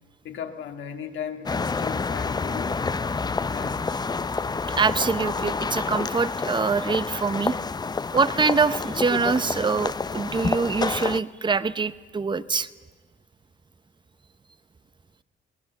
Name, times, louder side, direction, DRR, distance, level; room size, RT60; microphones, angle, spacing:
voice 1, 0.2-2.7 3.5-4.1, left 7 dB, 75° left, 5 dB, 1.9 m, -37 dB
sound 1, 1.5-11.2, left 4 dB, 20° left, 0.5 m, -28 dB
voice 2, 4.7-7.5 8.1-12.7, right 4 dB, 25° right, 15 dB, 0.8 m, -24 dB
23.0 x 18.5 x 7.3 m, 1.4 s
cardioid pair, 90°, 20 cm